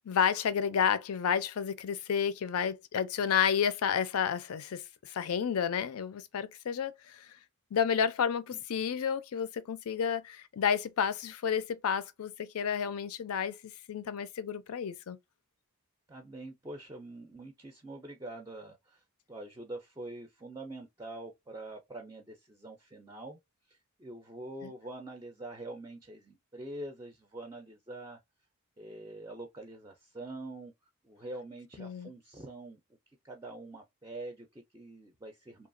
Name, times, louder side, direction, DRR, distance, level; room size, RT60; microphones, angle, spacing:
voice 1, 0.1-7.3 7.7-15.2 24.6-24.7 31.8-32.1, left 7 dB, 80° left, 0.4 m, -31 dB
voice 2, 16.1-23.4 23.7-28.2 28.8-30.7 31.0-32.8 33.2-35.7, right 2 dB, 15° right, 0.4 m, -45 dB
2.8 x 2.3 x 2.5 m
head